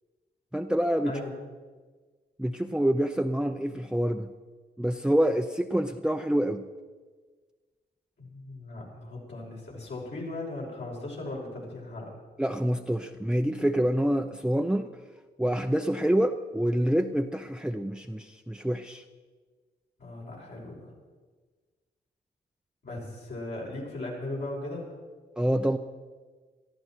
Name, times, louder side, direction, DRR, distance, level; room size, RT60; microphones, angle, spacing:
voice 1, 0.5-1.1 2.4-4.3 4.8-6.6 12.4-14.9 15.4-19.0 25.4-25.8, equal, 5° right, 6 dB, 0.7 m, -26 dB
voice 2, 8.2-12.1 20.0-20.9 22.8-24.9, left 2 dB, 70° left, -4 dB, 6.0 m, -37 dB
19.0 x 13.5 x 4.6 m, 1.4 s
supercardioid pair, 50°, 19 cm